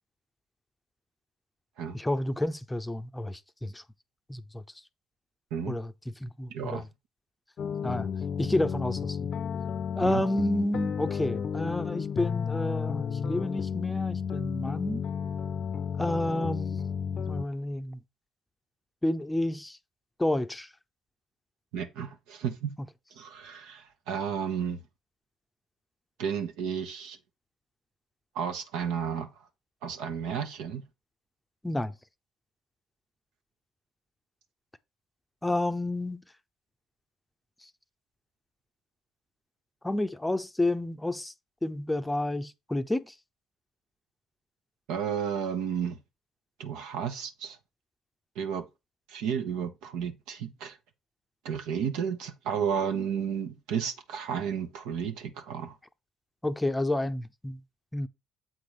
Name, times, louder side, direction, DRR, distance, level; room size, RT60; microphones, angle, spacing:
voice 1, 1.9-3.8 4.3-4.6 5.7-5.9 6.2-6.8 7.8-8.1 8.4-9.3 10.0-15.0 16.0-16.9 17.3-18.0 19.0-19.8 20.2-20.7 31.6-31.9 35.4-36.2 39.8-41.3 41.6-43.1 56.4-57.6 57.9-58.1, left 1 dB, 10° left, 0.6 m, -30 dB
voice 2, 6.5-6.8 10.0-10.2 21.7-22.7 23.2-24.8 26.2-27.2 28.3-29.3 29.8-30.8 44.9-46.0 46.6-47.6 48.3-48.6 49.1-50.8 51.4-55.7, right 7 dB, 80° right, 1.1 m, -32 dB
sound 1, 7.6-17.4, left 7 dB, 50° left, 0.6 m, -32 dB
7.7 x 3.9 x 4.9 m
supercardioid pair, 75°, 0 cm